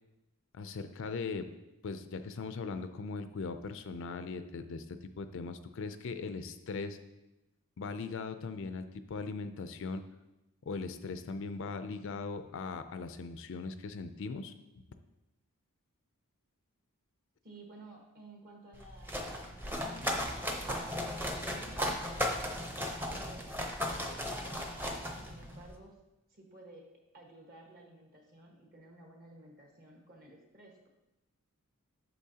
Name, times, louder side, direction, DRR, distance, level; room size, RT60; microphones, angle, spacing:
voice 1, 0.5-1.5 1.8-4.8 5.2-7.0 7.8-10.0 10.7-14.5, left 4 dB, 60° left, 10 dB, 0.4 m, -39 dB
voice 2, 17.4-20.7 21.5-24.6 25.2-25.9 26.3-26.9 27.1-30.9, right 1 dB, 40° right, 0 dB, 1.5 m, -54 dB
sound 1, 18.7-25.7, equal, 10° right, 0.7 m, -36 dB
8.3 x 6.8 x 2.8 m, 0.98 s
head